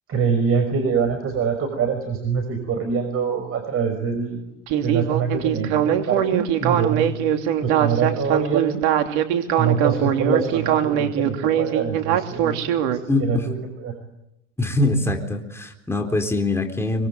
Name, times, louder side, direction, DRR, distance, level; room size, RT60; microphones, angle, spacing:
voice 1, 0.1-4.5 4.8-7.3 7.6-8.8 9.6-13.9, right 6 dB, 40° right, 7 dB, 5.7 m, -24 dB
Speech synthesizer, 4.7-13.0, right 10 dB, 65° right, 3.1 m, -21 dB
voice 2, 13.1-13.4 14.6-17.1, left 2 dB, 5° left, 4 dB, 4.0 m, -23 dB
25.5 x 25.0 x 9.4 m, 0.84 s
hypercardioid pair, 95°, 36 cm